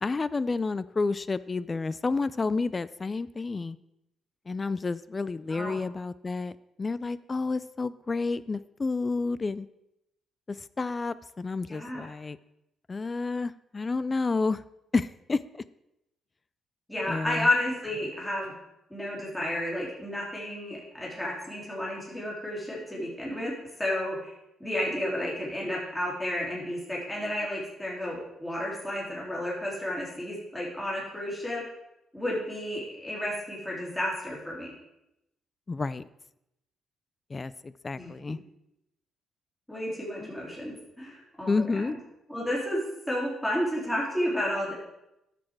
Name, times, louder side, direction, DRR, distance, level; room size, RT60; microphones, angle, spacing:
voice 1, 0.0-3.8 4.5-6.5 6.8-9.7 10.5-12.4 12.9-14.6 14.9-15.6 17.1-17.5 35.7-36.1 37.3-38.4 40.2-40.3 41.5-42.0, left 3 dB, 30° left, 17 dB, 0.3 m, -30 dB
voice 2, 11.7-12.1 16.9-18.5 18.9-23.5 23.8-24.3 24.6-31.6 32.1-34.7 38.0-38.1 39.7-41.7 42.3-44.7, left 1 dB, 10° left, -4 dB, 2.8 m, -31 dB
10.5 x 6.4 x 4.7 m, 0.86 s
cardioid pair, 90°, 0 cm